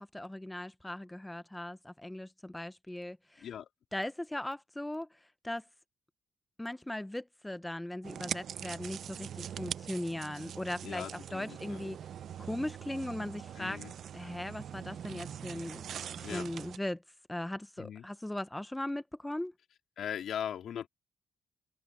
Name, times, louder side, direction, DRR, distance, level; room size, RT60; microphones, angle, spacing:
voice 1, 0.0-3.5 3.9-5.6 6.6-12.0 12.4-13.8 14.1-15.8 16.2-17.0 17.3-19.5, left 1 dB, 10° left, 0.7 m, -39 dB
voice 2, 3.4-3.7 10.8-11.8 13.6-13.9 16.2-16.5 17.8-18.0 20.0-20.9, left 9 dB, 65° left, 3.6 m, -39 dB
sound 1, 8.0-16.8, right 9 dB, 65° right, 0.7 m, -42 dB
open air
cardioid pair, 90°, 0 cm